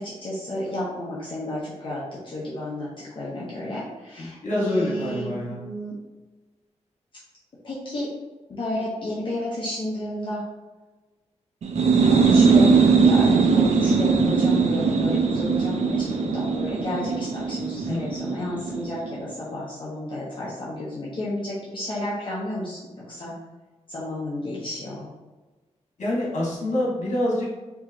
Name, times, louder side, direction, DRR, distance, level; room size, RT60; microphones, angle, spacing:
voice 1, 0.0-2.9 3.1-6.0 7.6-8.1 8.5-10.4 12.2-22.8 23.1-23.3 23.9-25.1, left 1 dB, 45° left, -7 dB, 0.9 m, -32 dB
voice 2, 4.2-5.6 14.1-14.3 17.8-18.0 26.0-27.6, left 1 dB, 90° left, -5 dB, 1.5 m, -26 dB
sound 1, 11.6-19.1, right 5 dB, 70° right, 0.5 m, -20 dB
4.7 x 2.9 x 2.8 m, 1.2 s
wide cardioid pair, 155°, 12 cm